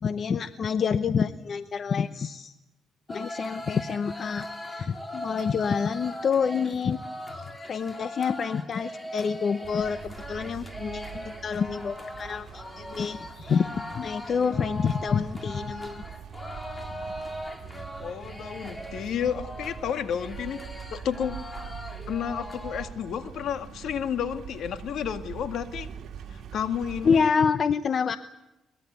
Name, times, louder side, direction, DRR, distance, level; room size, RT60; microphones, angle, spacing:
voice 1, 0.0-2.5 3.1-7.0 7.3-16.0 27.0-28.2, left 6 dB, 50° left, 12 dB, 0.9 m, -27 dB
sound 1, 3.1-22.9, equal, 15° left, 3.2 m, -40 dB
sound 2, 9.6-27.3, right 8 dB, 65° right, 2.2 m, -43 dB
voice 2, 18.0-20.6 20.9-21.4 22.1-25.9 26.3-27.3, left 8 dB, 70° left, 9 dB, 1.9 m, -31 dB
23.0 x 21.0 x 8.2 m, 0.97 s
cardioid pair, 90°, 0 cm